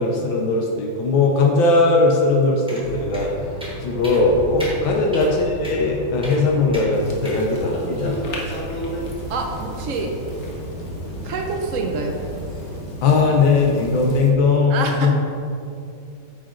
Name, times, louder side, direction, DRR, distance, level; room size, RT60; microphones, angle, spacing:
voice 1, 0.0-3.3 3.8-8.1 13.0-15.1, left 3 dB, 75° left, 0 dB, 1.5 m, -19 dB
sound 1, 2.7-2.8 3.1-3.2 3.6-3.8 4.0-4.2 4.6-4.8 5.1-5.3 5.6-5.8 6.2-6.4 6.7-6.9 7.2-7.4, equal, 5° right, 1.0 m, -35 dB
sound 2, 2.8-12.8, equal, 60° right, 2.4 m, -34 dB
sound 3, 6.9-14.3, equal, 45° left, 1.0 m, -34 dB
voice 2, 9.3-10.1 11.2-12.2 14.7-15.1, right 4 dB, 85° right, 2 dB, 0.7 m, -27 dB
9.2 x 5.1 x 3.8 m, 2.5 s
omnidirectional pair, 2.2 m